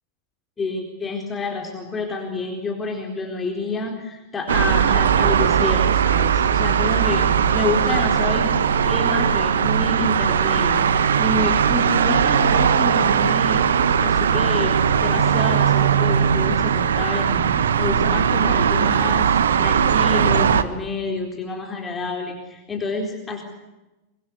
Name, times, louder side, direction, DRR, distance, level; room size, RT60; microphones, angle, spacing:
voice 1, 0.6-8.6 8.8-23.4, left 3 dB, 20° left, 2 dB, 4.2 m, -28 dB
sound 1, 4.5-20.6, right 7 dB, 65° right, 1.5 m, -19 dB
25.0 x 24.0 x 8.2 m, 1.0 s
figure-of-eight pair, 90°, 0 cm